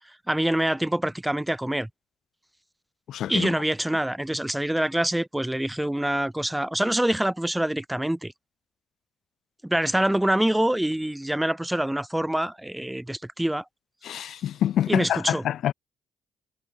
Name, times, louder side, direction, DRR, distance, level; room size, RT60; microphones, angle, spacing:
voice 1, 0.3-1.9 3.3-8.3 9.6-13.6 14.9-15.4, right 1 dB, 5° right, 0.9 m, -25 dB
voice 2, 3.1-3.5 14.0-15.7, left 11 dB, 75° left, 2.3 m, -26 dB
cardioid pair, 80°, 0 cm